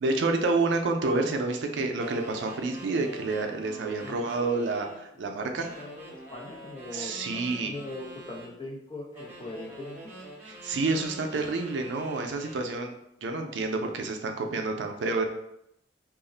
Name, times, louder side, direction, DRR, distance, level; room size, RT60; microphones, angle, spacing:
voice 1, 0.0-5.7 6.9-7.7 10.5-12.9 13.2-15.2, right 3 dB, 80° right, 4 dB, 0.4 m, -29 dB
sound 1, 2.0-5.1 5.6-8.5 9.1-12.7, right 1 dB, 15° right, 0.9 m, -45 dB
voice 2, 5.4-10.1, left 2 dB, 30° left, -1 dB, 0.5 m, -41 dB
2.4 x 2.0 x 3.7 m, 0.80 s
head